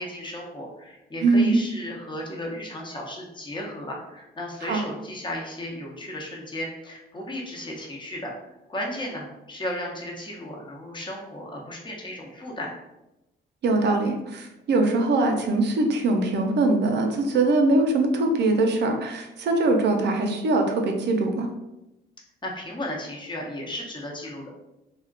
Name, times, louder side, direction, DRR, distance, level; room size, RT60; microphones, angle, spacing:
voice 1, 0.0-8.3 8.7-12.7 22.4-24.5, left 1 dB, 25° left, -1 dB, 0.9 m, -35 dB
voice 2, 1.2-1.6 4.6-4.8 13.6-21.5, right 2 dB, 65° right, 3 dB, 0.6 m, -22 dB
2.4 x 2.1 x 3.7 m, 0.92 s
cardioid pair, 85°, 19 cm